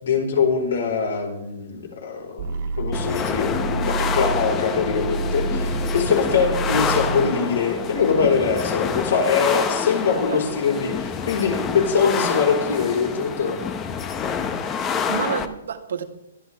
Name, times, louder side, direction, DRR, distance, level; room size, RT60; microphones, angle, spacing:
voice 1, 0.0-13.7, left 5 dB, 70° left, 2 dB, 4.6 m, -23 dB
sound 1, 2.4-8.4, right 3 dB, 40° right, 1.3 m, -29 dB
sound 2, 2.9-15.5, left 6 dB, 15° left, 0.8 m, -27 dB
voice 2, 14.7-16.0, right 7 dB, 80° right, 4 dB, 2.1 m, -30 dB
22.0 x 12.0 x 3.5 m, 0.81 s
hypercardioid pair, 175°, 0 cm